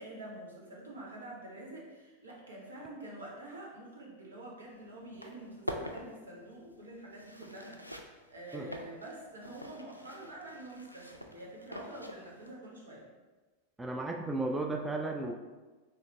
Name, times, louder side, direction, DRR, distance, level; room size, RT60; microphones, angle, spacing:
voice 1, 0.0-13.1, right 1 dB, 70° right, -4 dB, 1.1 m, -47 dB
sound 1, 4.6-4.7 5.0-12.5, equal, 90° left, 0.3 m, -45 dB
voice 2, 13.8-15.3, right 2 dB, 10° right, 1 dB, 0.3 m, -34 dB
3.9 x 3.0 x 3.1 m, 1.3 s
figure-of-eight pair, 90°, 0 cm